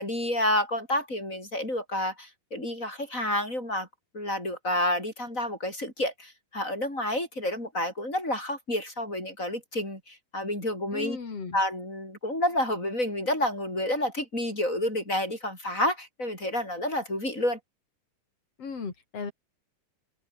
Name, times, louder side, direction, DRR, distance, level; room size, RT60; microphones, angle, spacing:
voice 1, 0.0-3.9 4.1-11.2 11.5-17.6, left 1 dB, 20° left, 8.0 m, -29 dB
voice 2, 10.9-11.6 18.6-19.3, left 5 dB, 40° left, 5.0 m, -36 dB
open air
omnidirectional pair, 4.2 m